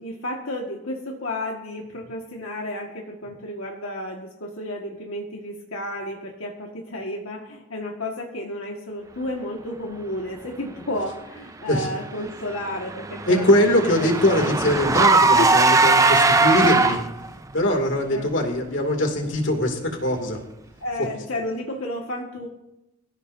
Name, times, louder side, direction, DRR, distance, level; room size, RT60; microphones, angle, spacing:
voice 1, 0.0-14.5 15.3-15.6 16.2-16.3 18.1-18.3 20.8-22.5, left 1 dB, 80° left, 0 dB, 1.8 m, -32 dB
Car / Engine, 12.3-17.3, right 3 dB, 15° right, 0.5 m, -19 dB
voice 2, 13.3-17.0 17.5-20.4, left 1 dB, 60° left, 3 dB, 2.6 m, -22 dB
23.5 x 14.5 x 2.7 m, 0.90 s
head